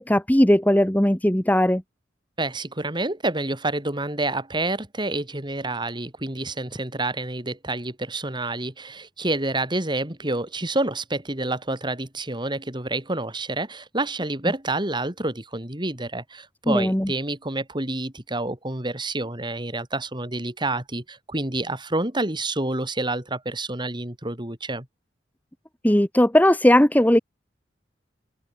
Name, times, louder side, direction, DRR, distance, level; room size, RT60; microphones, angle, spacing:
voice 1, 0.0-1.8 16.7-17.1 25.8-27.2, left 1 dB, 10° left, 1.3 m, -18 dB
voice 2, 2.4-24.9, right 2 dB, 25° right, 3.9 m, -28 dB
open air
head